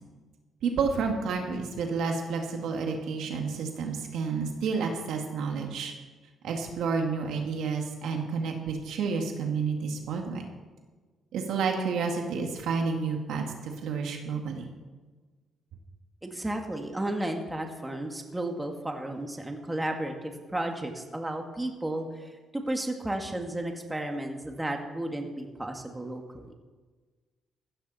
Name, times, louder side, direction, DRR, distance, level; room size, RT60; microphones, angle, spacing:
voice 1, 0.6-5.9 6.4-10.4 11.3-14.7, right 5 dB, 80° right, 2 dB, 2.1 m, -30 dB
voice 2, 16.2-26.5, right 1 dB, 10° right, 3 dB, 1.9 m, -33 dB
15.5 x 13.0 x 4.3 m, 1.4 s
cardioid pair, 90°, 0 cm